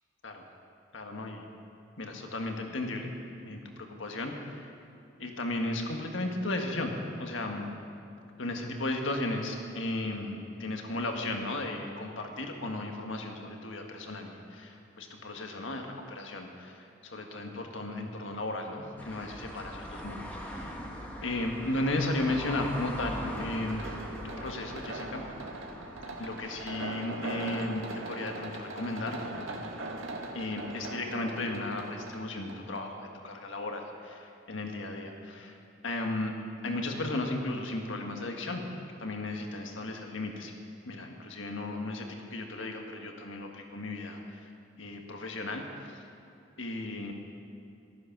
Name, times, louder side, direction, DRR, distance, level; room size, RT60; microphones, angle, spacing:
voice 1, 0.9-1.5 2.0-3.1 3.4-4.7 5.2-6.9 7.2-7.6 8.4-20.8 21.2-23.9 24.2-25.2 26.2-29.2 30.3-35.6 35.8-36.3 36.6-38.6 39.0-40.5 40.9-44.5 44.8-46.0 46.6-47.1, left 2 dB, 75° left, 3 dB, 1.6 m, -35 dB
sound 1, 19.0-26.8, equal, 10° left, 1.6 m, -41 dB
sound 2, 23.3-32.8, right 2 dB, 85° right, 1.7 m, -40 dB
14.5 x 13.0 x 6.0 m, 2.6 s
head